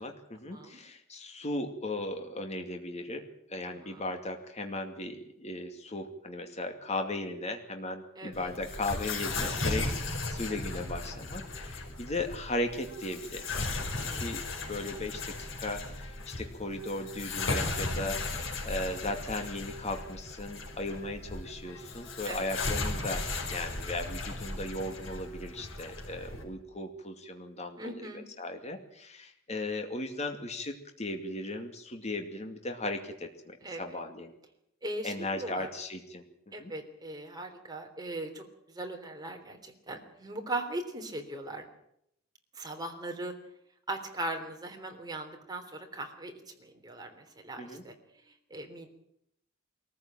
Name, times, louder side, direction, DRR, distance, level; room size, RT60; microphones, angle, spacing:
voice 1, 0.0-27.9 28.4-34.3 35.0-36.3 36.6-36.7 47.6-47.8, left 2 dB, 35° left, 5 dB, 2.4 m, -37 dB
voice 2, 3.7-4.0 8.2-8.5 13.9-14.3 22.3-22.4 27.8-28.3 33.6-34.0 34.8-35.7 36.5-41.6 42.5-43.3 43.9-47.9 48.5-48.9, right 1 dB, 20° right, 3 dB, 3.5 m, -39 dB
sound 1, 8.3-26.4, left 2 dB, 70° left, 5.0 m, -36 dB
22.5 x 14.5 x 9.0 m, 0.76 s
head